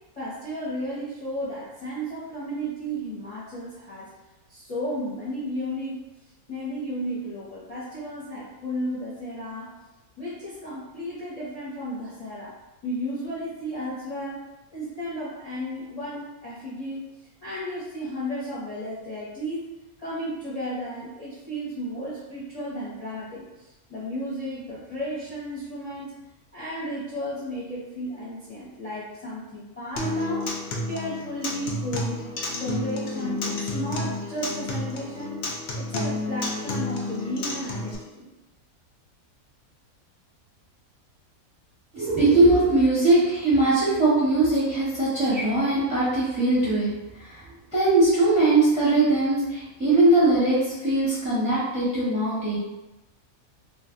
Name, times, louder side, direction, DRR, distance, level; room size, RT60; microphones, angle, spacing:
voice 1, 0.1-4.1 4.5-6.1 6.5-9.7 10.2-12.5 12.8-14.4 14.7-17.1 17.4-19.6 20.0-23.5 23.9-26.1 26.5-30.5 30.8-32.2 32.6-35.4 35.8-38.3, equal, 35° left, -9 dB, 0.7 m, -33 dB
Acoustic guitar, 30.0-37.9, left 2 dB, 65° left, 0.6 m, -30 dB
voice 2, 41.9-46.9 47.2-47.4 47.7-52.6, right 2 dB, 5° right, -8 dB, 0.8 m, -21 dB
2.5 x 2.2 x 3.6 m, 1.0 s
omnidirectional pair, 1.5 m